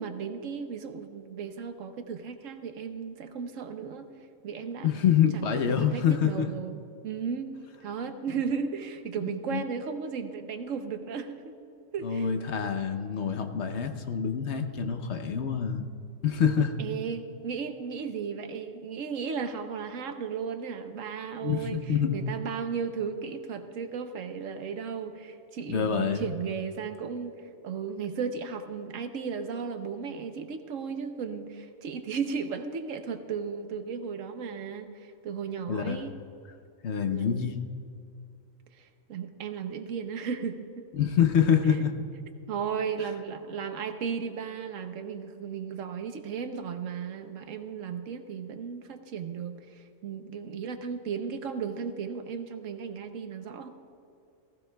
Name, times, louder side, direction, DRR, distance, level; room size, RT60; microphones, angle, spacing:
voice 1, 0.0-4.1 4.4-4.9 5.3-11.6 11.9-12.3 16.8-21.8 22.1-36.1 37.1-37.6 38.8-40.8 41.7-41.8 42.5-53.7, right 6 dB, 75° right, 8 dB, 1.2 m, -35 dB
voice 2, 4.8-6.5 9.5-9.6 12.0-15.9 16.2-16.7 21.4-22.2 25.7-26.3 35.7-36.1 36.8-37.7 40.9-41.9, left 8 dB, 60° left, 6 dB, 1.0 m, -26 dB
18.5 x 15.0 x 2.3 m, 2.6 s
omnidirectional pair, 1.4 m